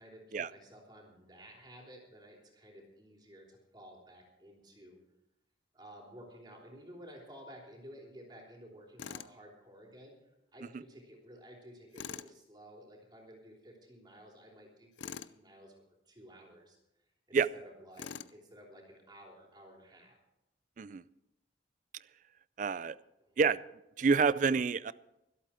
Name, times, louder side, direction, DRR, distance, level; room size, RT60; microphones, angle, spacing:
voice 1, 0.0-5.0 5.7-16.8 17.3-20.2 23.2-23.3, equal, 25° right, -1 dB, 3.3 m, -54 dB
Tools, 9.0-9.3 11.9-12.3 15.0-15.4 18.0-18.4, left 7 dB, 85° left, 0.5 m, -43 dB
voice 2, 22.6-23.0 23.4-23.6 24.0-24.9, right 5 dB, 45° right, 18 dB, 0.4 m, -28 dB
24.5 x 8.4 x 4.4 m, 0.88 s
head